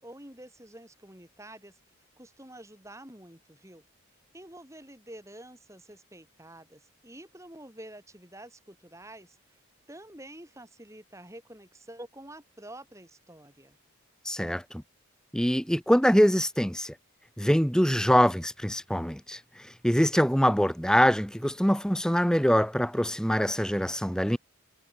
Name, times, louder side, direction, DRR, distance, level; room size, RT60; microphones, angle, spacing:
voice 1, 0.0-1.8 2.2-3.8 4.3-9.6 9.9-13.8, right 1 dB, 15° right, 6.4 m, -48 dB
voice 2, 14.3-14.6 15.3-16.9 17.4-19.4 19.8-24.4, equal, 5° left, 1.8 m, -24 dB
head